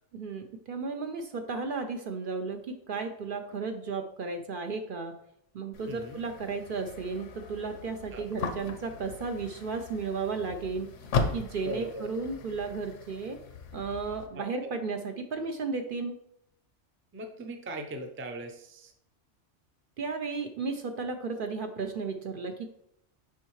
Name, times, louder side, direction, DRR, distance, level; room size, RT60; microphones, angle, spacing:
voice 1, 0.1-5.1 5.5-10.9 11.3-13.4 13.7-16.1 20.0-22.8, right 4 dB, 55° right, 6 dB, 0.7 m, -34 dB
sound 1, 5.7-14.3, left 4 dB, 80° left, 1.1 m, -37 dB
voice 2, 5.9-6.2 8.1-8.3 11.6-12.1 14.3-14.7 17.1-18.9, right 1 dB, 15° right, 5 dB, 0.4 m, -39 dB
6.9 x 5.4 x 3.1 m, 0.74 s
omnidirectional pair, 1.2 m